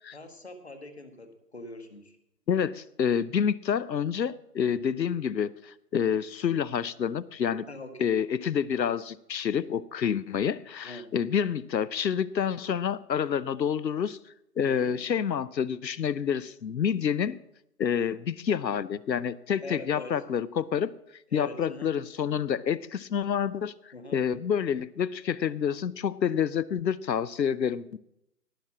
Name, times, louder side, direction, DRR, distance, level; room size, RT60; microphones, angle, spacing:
voice 1, 0.1-2.1 7.7-8.1 10.8-11.1 14.6-15.0 19.6-20.1 21.3-21.9 23.9-24.2, left 1 dB, 40° left, 8 dB, 1.6 m, -43 dB
voice 2, 2.5-7.7 8.0-14.2 14.6-17.4 17.8-20.9 21.3-28.0, left 8 dB, 85° left, 19 dB, 0.8 m, -28 dB
18.0 x 6.1 x 7.3 m, 0.81 s
hypercardioid pair, 180°, 50 cm